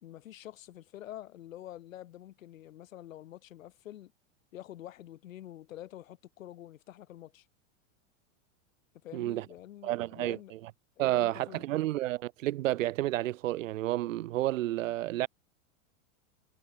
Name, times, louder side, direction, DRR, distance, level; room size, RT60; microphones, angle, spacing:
voice 1, 0.0-4.1 4.5-7.5 9.0-10.5 11.0-11.6, left 13 dB, 80° left, 2.9 m, -47 dB
voice 2, 9.1-9.4 9.8-10.7 11.0-15.3, right 15 dB, 75° right, 0.9 m, -31 dB
supercardioid pair, 175°, 39 cm